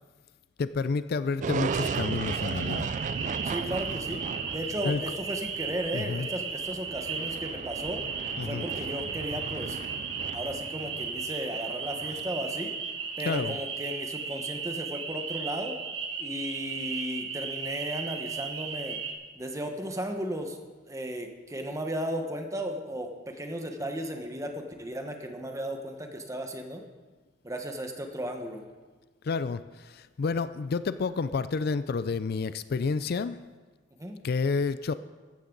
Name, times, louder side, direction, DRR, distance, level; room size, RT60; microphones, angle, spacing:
voice 1, 0.6-2.9 4.8-5.0 5.9-6.3 8.4-8.7 13.3-13.5 29.2-33.4 34.2-34.9, left 4 dB, 50° left, 13 dB, 0.4 m, -29 dB
sound 1, 1.4-12.6, right 5 dB, 40° right, 0.3 m, -36 dB
sound 2, 1.7-19.1, right 5 dB, 70° right, 1.5 m, -35 dB
voice 2, 3.4-4.2 4.5-8.0 8.4-9.8 10.3-12.7 13.2-15.8 16.2-19.0 19.4-20.6 20.8-26.8 27.4-28.6 34.0-34.2, equal, 15° right, 4 dB, 1.2 m, -35 dB
15.0 x 13.0 x 3.9 m, 1.3 s
head